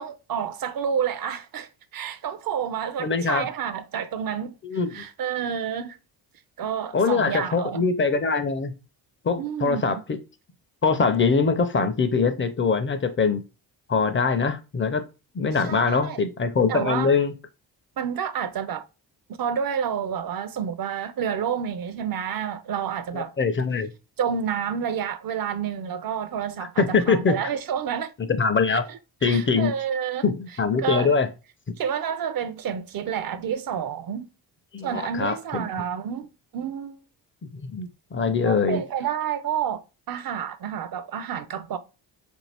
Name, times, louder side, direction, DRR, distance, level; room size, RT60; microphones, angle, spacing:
voice 1, 0.0-4.5 4.9-6.0 6.6-7.8 9.4-10.0 15.6-16.2 16.7-17.1 18.0-18.8 19.4-23.3 24.2-28.1 28.7-30.2 30.8-31.1 31.8-34.3 34.8-36.3 36.5-37.0 38.4-39.8 40.1-41.8, right 8 dB, 50° right, 0.5 m, -29 dB
voice 2, 3.0-3.5 4.6-5.0 6.9-8.7 9.2-10.2 10.8-13.4 13.9-15.0 15.3-17.3 23.1-23.9 26.8-27.3 28.3-28.9 29.2-29.7 30.2-31.3 34.7-35.6 37.6-38.8, left 4 dB, 25° left, 0.5 m, -23 dB
2.6 x 2.3 x 3.3 m
supercardioid pair, 60°, 45 cm